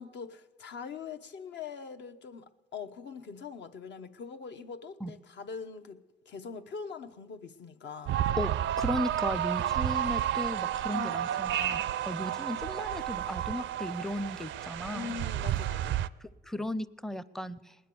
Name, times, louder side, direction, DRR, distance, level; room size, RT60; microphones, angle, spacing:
voice 1, 0.0-6.0 6.3-8.3 10.9-11.6 14.9-16.0, left 5 dB, 65° left, 0.9 m, -43 dB
sound 1, 8.1-16.1, right 11 dB, 70° right, 0.5 m, -31 dB
voice 2, 8.4-15.1 16.2-17.8, left 1 dB, ahead, 0.5 m, -36 dB
19.0 x 10.0 x 6.8 m
cardioid pair, 90°, 20 cm